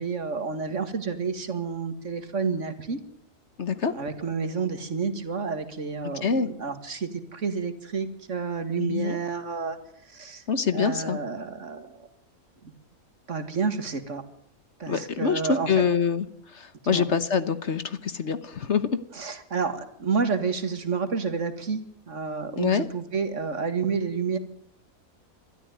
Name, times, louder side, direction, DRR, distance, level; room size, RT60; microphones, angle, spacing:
voice 1, 0.0-3.0 3.9-9.8 10.1-10.4 10.7-12.1 12.6-12.7 13.3-14.2 14.8-15.9 16.8-17.0 19.1-21.8 22.1-24.4, right 5 dB, 55° right, 10 dB, 2.2 m, -30 dB
voice 2, 3.6-3.9 6.2-6.5 8.8-9.2 10.5-11.2 14.9-16.2 16.5-18.9 22.6-22.9, left 6 dB, 55° left, 13 dB, 1.3 m, -25 dB
21.5 x 13.5 x 9.3 m, 0.71 s
omnidirectional pair, 1.5 m